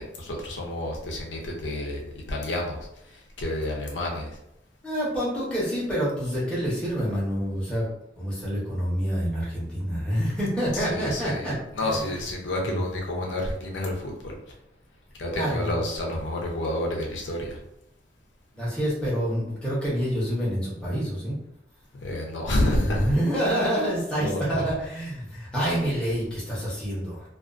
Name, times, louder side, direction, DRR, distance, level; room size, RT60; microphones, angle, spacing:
voice 1, 0.0-2.8 3.1-4.4 10.7-11.4 11.8-14.3 15.2-17.6 21.9-23.1 24.2-24.7, left 1 dB, 75° left, -1 dB, 0.5 m, -29 dB
voice 2, 4.8-7.9 8.2-12.2 12.6-12.8 15.3-15.7 18.5-21.4 22.8-27.3, equal, 5° left, -8 dB, 0.8 m, -27 dB
2.4 x 2.3 x 2.4 m, 0.79 s
head